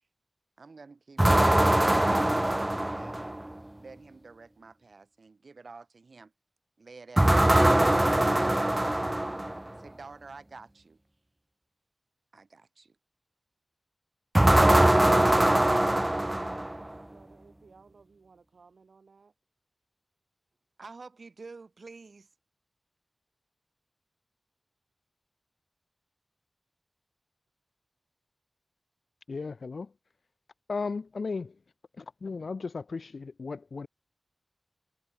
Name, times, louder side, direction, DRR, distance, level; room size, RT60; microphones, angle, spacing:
voice 1, 0.6-3.3 3.8-6.3 6.8-7.7 8.2-9.0 9.8-11.0 12.3-13.0 20.8-22.3, right 4 dB, 65° right, 6.9 m, -49 dB
sound 1, 1.2-3.5 7.2-9.7 14.3-17.0, right 1 dB, 15° right, 0.4 m, -22 dB
voice 2, 16.8-19.3, right 4 dB, 85° right, 7.8 m, -58 dB
voice 3, 29.3-29.9 30.7-31.6 32.0-33.9, left 4 dB, 70° left, 2.2 m, -35 dB
wide cardioid pair, 85°, 0 cm